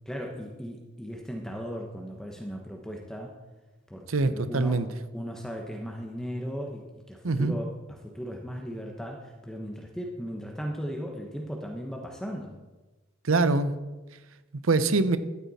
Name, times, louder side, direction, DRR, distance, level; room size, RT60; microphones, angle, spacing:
voice 1, 0.0-3.4 3.9-4.9 5.1-12.6, equal, 5° left, 1 dB, 1.0 m, -37 dB
voice 2, 4.1-4.9 7.2-7.5 13.2-13.7 14.6-15.2, right 3 dB, 75° right, 12 dB, 0.8 m, -23 dB
12.5 x 9.2 x 4.2 m, 1.1 s
head